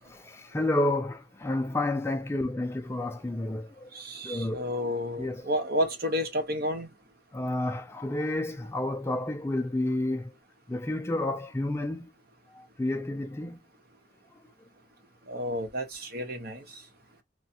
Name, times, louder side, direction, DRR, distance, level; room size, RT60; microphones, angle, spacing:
voice 1, 0.1-3.9 4.2-4.6 5.2-5.5 7.3-10.3 10.7-12.1 12.5-13.6, left 1 dB, 15° left, 0.4 m, -30 dB
voice 2, 3.9-6.9 15.3-16.6, equal, 60° right, 1.0 m, -31 dB
3.1 x 2.2 x 2.7 m
head